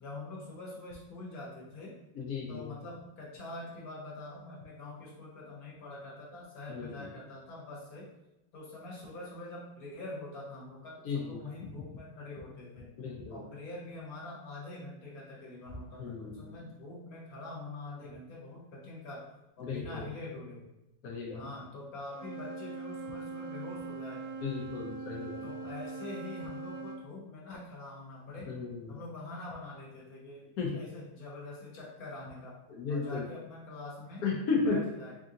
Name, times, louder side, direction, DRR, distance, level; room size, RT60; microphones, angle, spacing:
voice 1, 0.0-2.0 2.5-8.1 8.5-12.9 13.3-19.3 19.6-20.7 21.3-24.7 25.4-28.6 28.9-34.2 34.6-35.2, left 2 dB, 50° left, -4 dB, 1.4 m, -45 dB
voice 2, 2.2-2.7 6.7-7.1 11.0-11.4 13.0-13.4 16.0-16.5 19.6-20.1 21.0-21.5 24.4-25.4 28.5-28.9 30.6-30.8 32.7-33.2 34.2-34.8, left 4 dB, 75° left, -3 dB, 0.8 m, -34 dB
Wind instrument woodwind instrument, 22.1-27.0, right 4 dB, 70° right, 1.2 m, -41 dB
3.5 x 2.7 x 3.7 m, 0.90 s
omnidirectional pair, 2.3 m